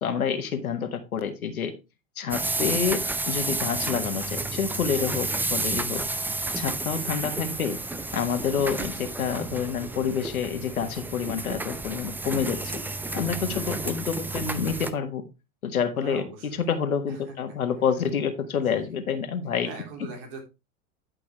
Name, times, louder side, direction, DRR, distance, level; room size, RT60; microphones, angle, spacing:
voice 1, 0.0-1.7 2.2-6.0 6.6-7.8 8.1-12.8 13.1-15.2 15.6-19.7, left 7 dB, 90° left, 8 dB, 1.7 m, -28 dB
sound 1, 2.3-14.9, right 2 dB, 5° right, 0.5 m, -31 dB
voice 2, 13.5-14.0 15.9-16.7 17.1-17.2 18.5-18.9 19.6-20.4, right 4 dB, 55° right, 2 dB, 3.4 m, -42 dB
11.5 x 5.9 x 3.1 m, 0.26 s
hypercardioid pair, 105°, 42 cm